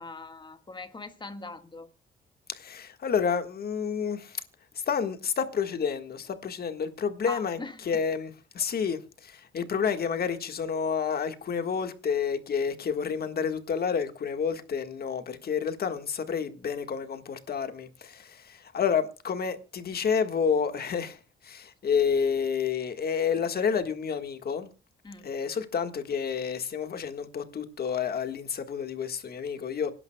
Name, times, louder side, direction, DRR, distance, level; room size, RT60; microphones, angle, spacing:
voice 1, 0.0-1.9 7.2-8.0 25.0-25.3, left 3 dB, 25° left, 1.7 m, -41 dB
voice 2, 2.5-4.4 4.7-7.6 7.8-24.7 25.2-29.9, left 6 dB, 50° left, 1.6 m, -29 dB
26.0 x 11.0 x 2.2 m
cardioid pair, 90°, 20 cm